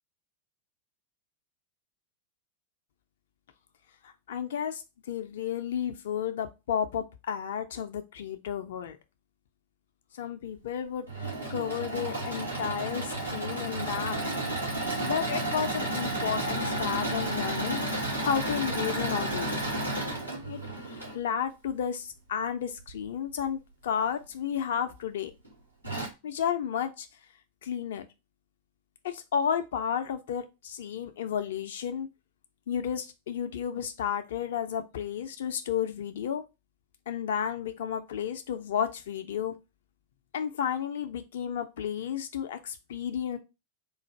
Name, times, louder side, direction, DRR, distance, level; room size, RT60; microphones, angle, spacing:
voice 1, 4.0-9.0 10.1-14.2 15.0-19.5 20.5-25.3 26.2-27.1 27.6-28.1 29.0-32.1 32.7-36.4 37.1-39.5 40.3-43.4, left 8 dB, 60° left, 8 dB, 0.4 m, -32 dB
Engine / Mechanisms, 10.9-21.2 22.8-23.5 24.1-24.2 24.5-24.6 25.4-25.5 25.8-26.1, right 1 dB, 85° right, 1.3 m, -32 dB
3.9 x 2.5 x 4.3 m, 0.26 s
figure-of-eight pair, 90°, 0 cm